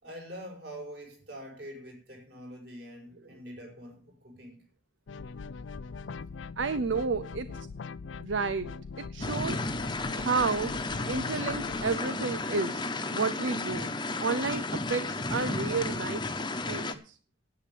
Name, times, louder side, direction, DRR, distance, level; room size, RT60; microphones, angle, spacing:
voice 1, 0.0-4.7, equal, 60° right, 5.3 m, -45 dB
sound 1, 5.1-12.0, left 4 dB, 80° left, 0.5 m, -41 dB
voice 2, 6.6-7.7 8.2-10.8 11.1-17.2, right 4 dB, 75° right, 0.6 m, -32 dB
sound 2, 9.2-16.9, left 2 dB, 25° left, 1.0 m, -33 dB
10.0 x 9.2 x 6.7 m
head